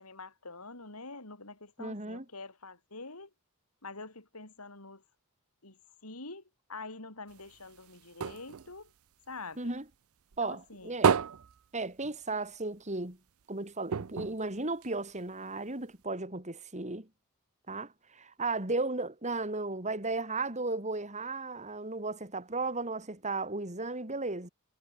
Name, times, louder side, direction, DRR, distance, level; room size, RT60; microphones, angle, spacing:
voice 1, 0.0-3.3 3.8-5.0 5.6-6.4 6.7-8.9 9.3-9.7 10.4-11.0, left 3 dB, 90° left, 5.8 m, -46 dB
voice 2, 1.8-2.2 9.6-9.8 10.4-11.2 11.7-13.2 13.5-17.1 17.7-24.5, right 3 dB, 30° right, 4.1 m, -35 dB
sound 1, 7.3-9.9 10.3-12.6 12.9-13.0 13.3-13.4 13.9-15.4 16.0-16.1, right 6 dB, 70° right, 0.5 m, -32 dB
head